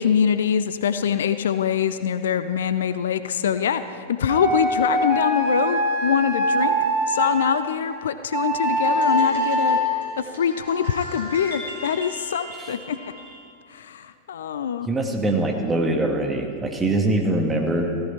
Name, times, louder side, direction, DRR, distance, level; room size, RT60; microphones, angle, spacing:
voice 1, 0.0-9.8 10.2-13.0 13.7-14.9, left 8 dB, 65° left, 12 dB, 0.5 m, -24 dB
sound 1, 4.3-7.5 8.3-9.8, right 1 dB, 40° right, 2.9 m, -23 dB
sound 2, 8.7-13.4, left 1 dB, 65° right, 4.1 m, -38 dB
voice 2, 14.9-17.9, right 2 dB, 15° right, 2 dB, 1.7 m, -23 dB
15.5 x 14.5 x 4.4 m, 2.3 s
figure-of-eight pair, 90°, 0 cm